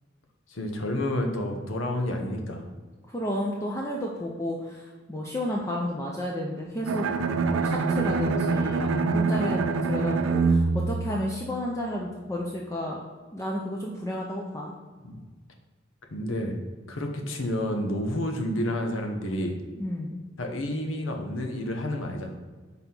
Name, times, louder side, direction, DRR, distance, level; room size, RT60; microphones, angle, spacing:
voice 1, 0.5-2.7 15.0-15.2 16.1-16.6 16.9-19.6 20.4-22.4, left 1 dB, 85° left, 3 dB, 0.9 m, -30 dB
voice 2, 3.1-7.1 7.5-13.0 13.3-14.7 19.8-20.2, left 1 dB, 15° left, -2 dB, 0.5 m, -32 dB
Bowed string instrument, 6.9-11.9, right 4 dB, 90° right, 0.5 m, -25 dB
5.6 x 4.0 x 4.3 m, 1.4 s
head